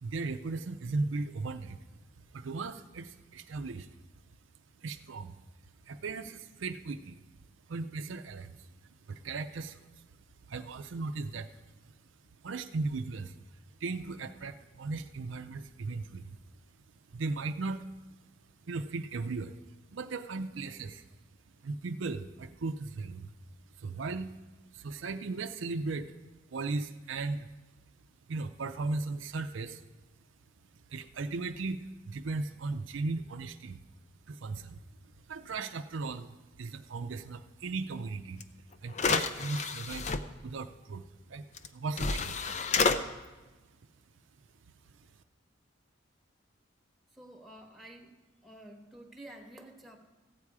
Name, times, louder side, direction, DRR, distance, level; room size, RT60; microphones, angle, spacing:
voice 1, 0.0-1.8 2.3-3.9 4.8-5.4 5.9-7.2 7.7-8.7 9.1-10.0 10.5-11.5 11.9-12.0 12.4-13.4 13.8-16.3 17.1-17.9 18.7-19.6 19.9-21.1 21.6-23.3 23.8-24.3 24.7-26.1 26.5-27.5 28.3-29.8 30.9-33.8 34.3-38.4 38.8-40.1 40.4-41.5 41.7-42.6, right 3 dB, 75° right, 9 dB, 0.5 m, -37 dB
sound 1, 38.4-38.5 38.9-40.2 41.6-41.7 42.0-43.0, left 4 dB, 35° left, 0.5 m, -29 dB
voice 2, 47.2-48.1 48.4-50.0, right 1 dB, ahead, -1 dB, 1.2 m, -50 dB
14.5 x 8.7 x 4.8 m, 1.2 s
head